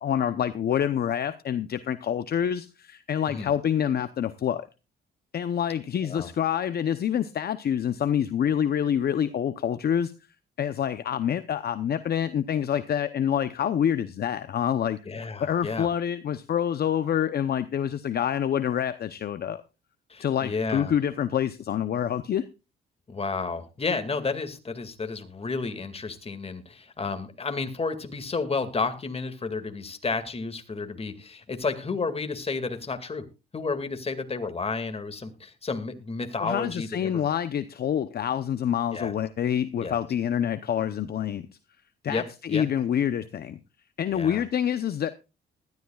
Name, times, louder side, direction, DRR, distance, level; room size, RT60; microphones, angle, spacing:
voice 1, 0.0-4.6 5.3-10.1 10.6-15.0 15.4-19.6 20.2-22.5 36.4-41.4 42.0-43.6 44.0-45.1, left 9 dB, 50° left, 12 dB, 0.8 m, -27 dB
voice 2, 15.1-15.9 20.1-20.9 23.1-33.3 33.5-37.2 38.9-39.1 39.8-40.0 42.1-42.7 44.1-44.4, left 4 dB, 30° left, 8 dB, 2.2 m, -31 dB
20.0 x 13.0 x 2.4 m, 0.30 s
cardioid pair, 90°, 20 cm